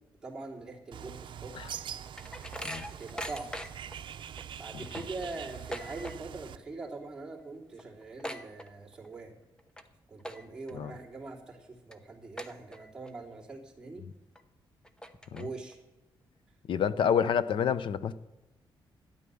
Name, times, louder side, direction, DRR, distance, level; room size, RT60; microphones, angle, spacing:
voice 1, 0.2-1.5 3.0-3.6 4.6-9.3 10.1-14.1 15.3-15.8, right 3 dB, 10° right, -4 dB, 3.2 m, -43 dB
Bird, 0.9-6.6, right 9 dB, 65° right, 0.6 m, -44 dB
sound 1, 1.5-4.0 4.4-4.5 4.8-6.5 6.7-7.1 7.4-7.5 7.7-9.1 9.6-9.8 10.2-10.7 11.2-11.3 11.9-12.0 12.4-13.1 13.5-13.6 14.4-14.5 14.8-15.7, equal, 10° left, 0.9 m, -41 dB
voice 2, 16.7-18.1, left 7 dB, 65° left, 15 dB, 0.7 m, -28 dB
13.0 x 9.9 x 7.0 m, 1.0 s
wide cardioid pair, 140°, 9 cm